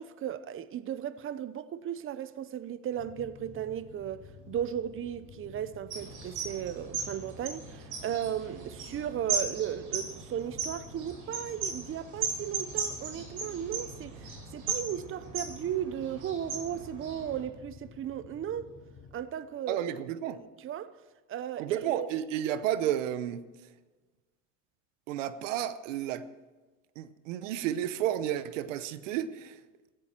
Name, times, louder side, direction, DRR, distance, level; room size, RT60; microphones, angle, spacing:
voice 1, 0.0-4.2 4.5-14.3 14.5-18.7 19.1-19.8 20.3-20.9 21.3-22.1, right 10 dB, 35° right, 0.8 m, -36 dB
sound 1, 2.9-19.1, left 6 dB, 50° left, 3.2 m, -52 dB
sound 2, 5.9-17.4, right 5 dB, 60° right, 5.8 m, -37 dB
voice 2, 19.7-20.4 21.6-23.5 25.1-26.3 27.0-29.6, right 11 dB, 90° right, 0.9 m, -32 dB
17.0 x 15.5 x 4.5 m
supercardioid pair, 95°, 36 cm